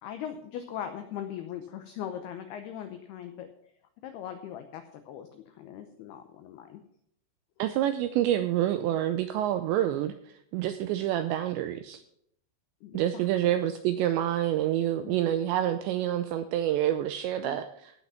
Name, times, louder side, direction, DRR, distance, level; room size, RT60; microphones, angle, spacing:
voice 1, 0.0-3.5 4.0-6.8 12.8-13.3 15.0-15.1 17.4-17.6, left 9 dB, 85° left, 7 dB, 2.2 m, -40 dB
voice 2, 7.6-12.0 12.9-17.9, right 12 dB, 85° right, 9 dB, 2.5 m, -28 dB
17.0 x 6.1 x 5.7 m, 0.70 s
omnidirectional pair, 5.7 m